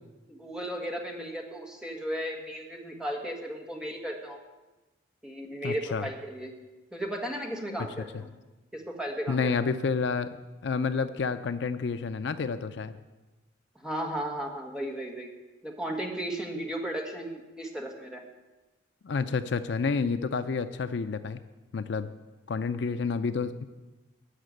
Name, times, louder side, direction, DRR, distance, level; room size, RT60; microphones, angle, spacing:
voice 1, 0.3-4.4 5.2-6.5 6.9-8.3 8.7-9.5 13.7-15.3 15.6-18.2, right 1 dB, 5° right, 1 dB, 1.5 m, -35 dB
voice 2, 5.6-6.1 9.3-10.3 10.6-12.9 19.0-21.4 21.7-22.1 22.5-23.6, left 5 dB, 60° left, 11 dB, 0.4 m, -29 dB
11.5 x 6.6 x 9.3 m, 1.1 s
head